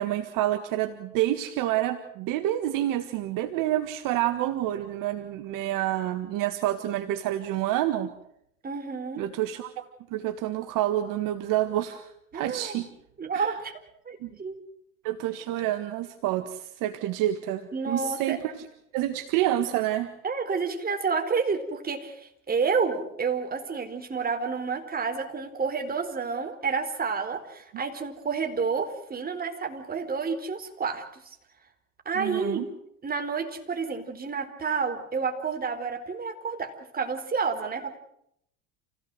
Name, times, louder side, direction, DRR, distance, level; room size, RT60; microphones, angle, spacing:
voice 1, 0.0-8.1 9.2-9.8 10.1-12.9 13.3-13.6 14.2-14.3 15.0-18.5 18.9-20.1 32.2-32.7, right 13 dB, 55° right, 9 dB, 1.8 m, -28 dB
voice 2, 8.6-9.2 12.3-12.8 13.2-13.8 14.1-14.6 17.7-18.4 20.2-31.3 32.1-32.7 33.0-38.0, right 5 dB, 20° right, 5 dB, 4.4 m, -30 dB
28.0 x 17.0 x 7.9 m, 0.75 s
hypercardioid pair, 95°, 39 cm